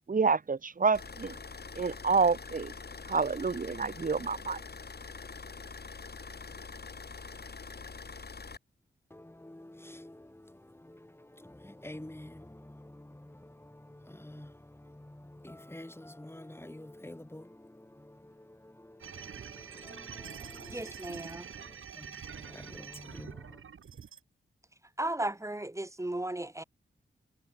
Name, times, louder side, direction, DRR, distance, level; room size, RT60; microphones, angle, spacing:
voice 1, 0.1-1.4 1.8-2.7 3.1-4.6, right 4 dB, 40° right, 1.2 m, -28 dB
sound 1, 0.9-8.6, left 4 dB, 50° left, 4.1 m, -45 dB
voice 2, 9.1-21.0 22.0-22.1 22.4-23.6, left 1 dB, 10° left, 3.1 m, -49 dB
sound 2, 19.0-24.2, right 7 dB, 85° right, 3.2 m, -46 dB
voice 3, 20.7-21.4 25.0-26.6, right 1 dB, 15° right, 1.4 m, -35 dB
cardioid pair, 70°, 21 cm